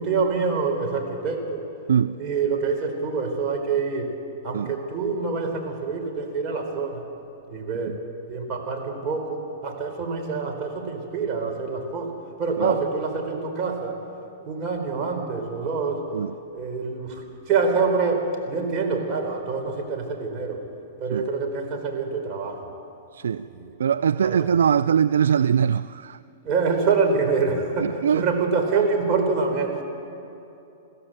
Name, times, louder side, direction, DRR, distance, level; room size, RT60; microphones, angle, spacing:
voice 1, 0.0-1.6 2.2-4.1 4.4-7.0 7.5-8.0 8.3-14.0 14.4-16.0 16.5-20.6 21.0-22.6 23.3-23.8 24.2-24.5 26.4-29.8, right 4 dB, 40° right, 4.3 m, -26 dB
voice 2, 23.1-23.5 23.8-26.2 27.8-28.3, right 7 dB, 80° right, 0.4 m, -22 dB
22.5 x 15.5 x 7.9 m
hypercardioid pair, 125°, 0 cm